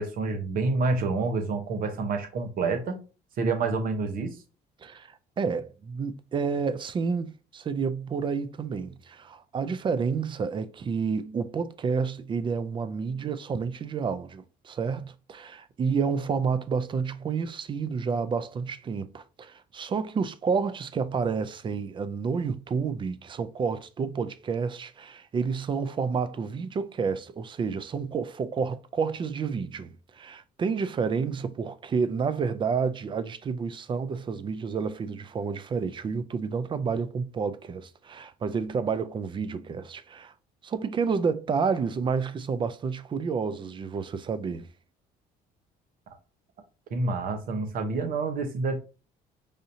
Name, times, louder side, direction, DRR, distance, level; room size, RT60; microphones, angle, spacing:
voice 1, 0.0-3.0 3.4-4.4 46.9-48.8, right 3 dB, 55° right, 0.9 m, -28 dB
voice 2, 3.4-3.8 4.8-40.3 40.6-44.7, right 5 dB, 30° right, 0.4 m, -30 dB
4.9 x 2.7 x 2.6 m
cardioid pair, 110°, 17 cm